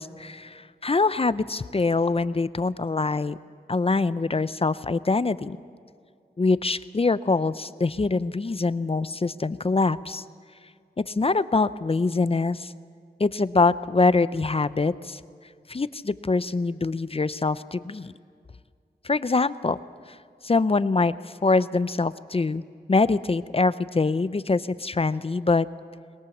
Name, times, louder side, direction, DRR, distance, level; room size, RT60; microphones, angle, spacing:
voice 1, 0.0-3.4 3.7-5.6 6.4-10.2 11.0-12.7 13.2-15.2 15.7-18.1 19.0-19.8 20.1-20.2 20.4-22.6 22.9-25.7, left 3 dB, 35° left, 15 dB, 0.5 m, -24 dB
23.0 x 20.5 x 7.2 m, 2.1 s
wide cardioid pair, 85°, 17 cm